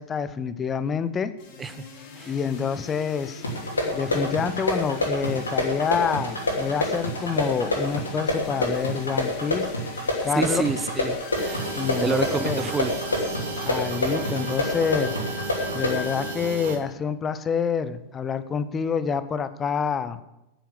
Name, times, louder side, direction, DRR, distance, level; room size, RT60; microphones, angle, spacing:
voice 1, 0.0-1.3 2.3-3.4 3.9-9.7 10.2-10.6 11.8-12.7 13.6-15.1 15.7-20.2, left 6 dB, 20° left, 13 dB, 0.7 m, -27 dB
sound 1, 1.4-16.3, left 5 dB, 45° left, 2.4 m, -40 dB
sound 2, 3.4-16.0, left 1 dB, 75° left, 2.8 m, -28 dB
voice 2, 10.4-11.7 12.0-12.9, right 4 dB, 15° right, 13 dB, 0.5 m, -28 dB
sound 3, 11.3-16.8, right 5 dB, 55° right, 1.3 m, -34 dB
9.3 x 9.1 x 6.8 m, 0.93 s
figure-of-eight pair, 90°, 0 cm